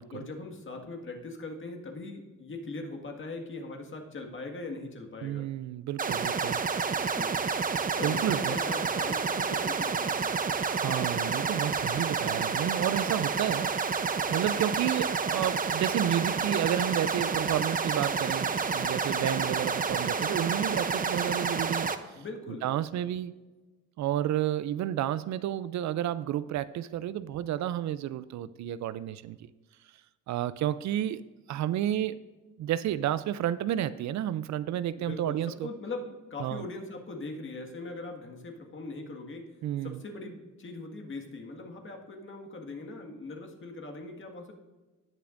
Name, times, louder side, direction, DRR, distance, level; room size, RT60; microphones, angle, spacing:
voice 1, 0.1-5.4 7.0-7.3 8.0-10.4 22.1-22.7 22.9-23.1 35.0-39.5 39.8-44.5, left 3 dB, 40° left, 2 dB, 1.8 m, -41 dB
voice 2, 5.2-6.6 8.0-8.6 10.6-14.0 14.3-21.9 22.6-23.3 24.0-29.4 30.3-31.2 31.5-32.2 32.6-35.7 36.4-36.6 39.6-40.0, right 11 dB, 65° right, 16 dB, 0.5 m, -31 dB
sound 1, 6.0-22.0, right 5 dB, 30° right, 0.6 m, -29 dB
18.0 x 6.8 x 2.6 m, 1.2 s
cardioid pair, 90°, 30 cm